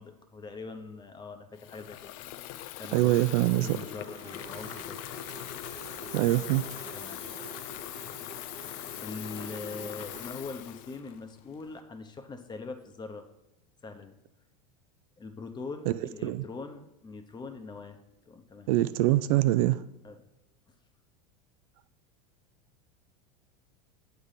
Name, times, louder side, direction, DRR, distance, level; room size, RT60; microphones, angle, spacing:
voice 1, 0.0-2.1 2.8-5.0 6.9-7.4 9.0-13.2 13.8-14.2 15.2-18.0 18.3-18.7 20.0-20.2, left 4 dB, 20° left, 6 dB, 0.9 m, -42 dB
Water tap faucet / Fill (with liquid), 1.5-11.8, left 14 dB, 60° left, 0.4 m, -41 dB
voice 2, 2.9-3.7 6.1-6.6 15.9-16.0 16.2-16.4 18.7-19.8, right 16 dB, 65° right, 14 dB, 0.4 m, -24 dB
sound 1, 3.0-10.3, right 7 dB, 40° right, 0.8 m, -49 dB
7.9 x 3.5 x 5.7 m, 0.94 s
hypercardioid pair, 100°, 20 cm